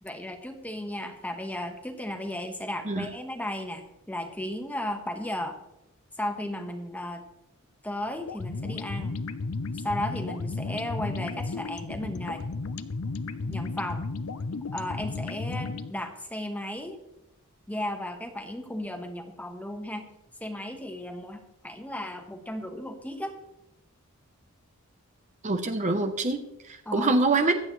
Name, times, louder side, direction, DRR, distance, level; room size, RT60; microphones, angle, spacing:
voice 1, 0.0-5.6 6.2-7.2 7.8-9.2 9.7-12.4 13.4-14.1 14.7-17.0 17.7-20.1 20.4-23.4 26.8-27.1, left 1 dB, 5° left, 5 dB, 1.3 m, -35 dB
sound 1, 8.3-15.9, left 3 dB, 80° left, 0.7 m, -34 dB
voice 2, 25.4-27.6, right 3 dB, 35° right, 7 dB, 0.8 m, -25 dB
24.5 x 8.6 x 3.2 m, 0.89 s
head